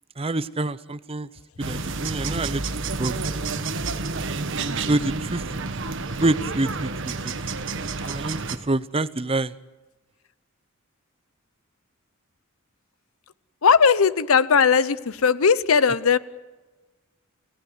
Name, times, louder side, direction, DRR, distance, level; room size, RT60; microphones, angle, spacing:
voice 1, 0.2-1.3 1.7-2.6 3.0-3.2 4.9-5.4 6.2-7.3 8.0-9.5, right 2 dB, 30° right, 16 dB, 0.7 m, -26 dB
sound 1, 1.6-8.6, right 3 dB, 60° right, 1.4 m, -29 dB
voice 2, 13.6-16.2, left 6 dB, 85° left, 17 dB, 0.8 m, -18 dB
29.5 x 17.0 x 8.0 m, 1.2 s
head